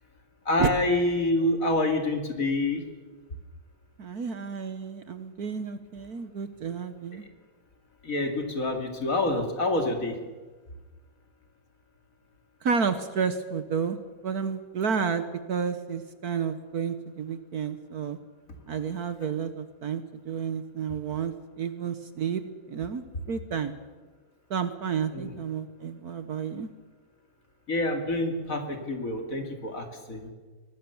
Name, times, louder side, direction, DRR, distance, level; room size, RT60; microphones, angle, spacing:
voice 1, 0.5-2.8 8.0-10.2 25.1-25.3 27.7-30.3, left 2 dB, 45° left, 5 dB, 2.9 m, -27 dB
voice 2, 4.0-7.2 12.6-14.0 14.2-18.2 18.7-22.4 22.7-23.7 24.5-26.7, right 6 dB, 55° right, 11 dB, 1.5 m, -31 dB
23.5 x 19.0 x 7.1 m, 1.3 s
omnidirectional pair, 2.1 m